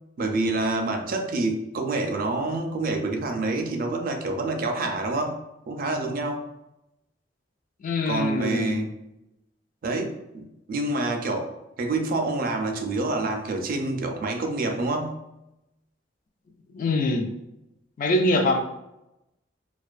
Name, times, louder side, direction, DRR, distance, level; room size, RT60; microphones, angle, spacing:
voice 1, 0.2-5.4 5.7-6.4 8.1-8.9 9.8-11.5 11.8-15.2, right 2 dB, 50° right, 4 dB, 0.4 m, -27 dB
voice 2, 7.8-8.9 16.7-17.3 18.0-18.6, left 2 dB, 45° left, 4 dB, 0.3 m, -24 dB
2.4 x 2.2 x 2.3 m, 0.88 s
head